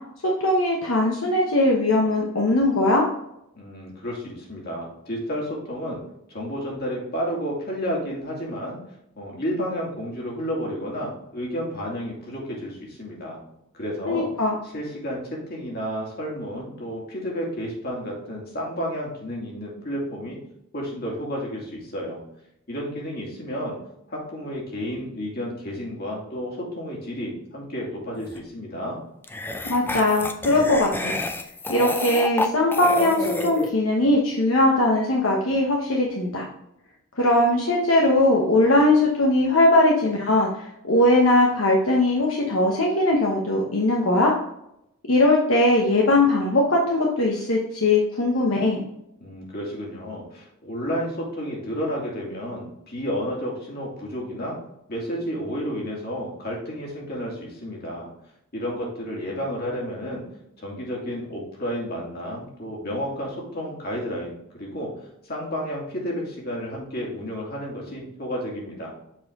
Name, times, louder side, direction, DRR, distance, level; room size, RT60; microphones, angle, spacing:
voice 1, 0.2-3.1 14.1-14.5 29.6-31.2 31.7-36.5 37.2-44.3 45.1-48.8, left 1 dB, 75° left, -1 dB, 1.1 m, -20 dB
voice 2, 3.5-6.0 6.3-8.8 9.2-13.4 13.7-14.3 14.7-20.4 20.7-22.2 22.7-23.8 24.1-29.0 49.2-54.6 54.9-58.1 58.5-60.2 60.6-64.9 65.2-68.9, equal, 50° left, -3 dB, 2.5 m, -31 dB
sound 1, 28.2-28.4 29.2-33.7, left 2 dB, 10° left, 0.5 m, -29 dB
7.3 x 4.6 x 3.6 m, 0.80 s
head